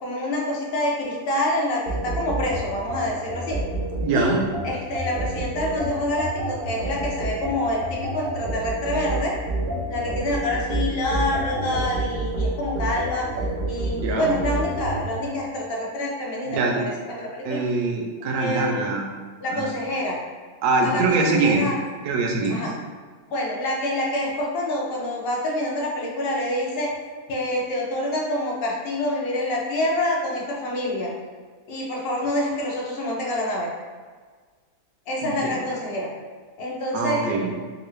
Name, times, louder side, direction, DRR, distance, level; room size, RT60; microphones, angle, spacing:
voice 1, 0.0-3.6 4.1-4.4 4.6-9.3 9.9-17.6 18.4-19.0 19.4-20.2 20.8-21.8 22.5-22.7 23.3-26.9 27.3-31.1 31.7-33.7 35.1-36.1 36.6-37.2, left 1 dB, 55° left, -3 dB, 0.7 m, -27 dB
sound 1, 1.9-15.0, right 1 dB, 65° right, 0.5 m, -28 dB
voice 2, 4.0-4.4 14.0-14.3 16.5-16.8 17.4-19.1 19.5-19.7 20.6-21.6 22.0-22.6 35.2-35.6 36.9-37.5, right 3 dB, 85° right, 1 dB, 1.1 m, -23 dB
3.1 x 2.5 x 3.1 m, 1.5 s
omnidirectional pair, 1.6 m